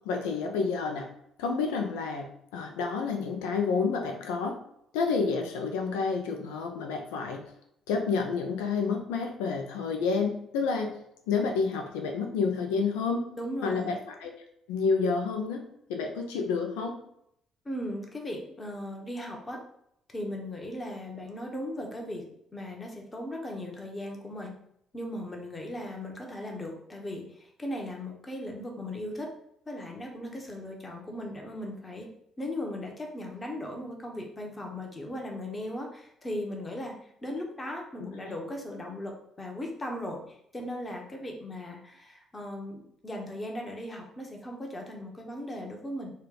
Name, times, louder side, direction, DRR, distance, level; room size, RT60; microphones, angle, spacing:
voice 1, 0.0-1.1 1.4-2.3 2.5-4.6 4.9-7.4 7.9-11.0 11.3-13.3 13.6-14.3 14.7-15.6 15.9-16.9 38.2-38.3, left 5 dB, 75° left, 4 dB, 0.4 m, -29 dB
voice 2, 13.4-14.0 17.6-19.6 20.1-22.2 22.5-24.5 24.9-29.3 29.7-32.1 32.4-46.1, left 1 dB, 25° left, 1 dB, 0.9 m, -37 dB
3.2 x 2.2 x 3.8 m, 0.73 s
hypercardioid pair, 50°, 0 cm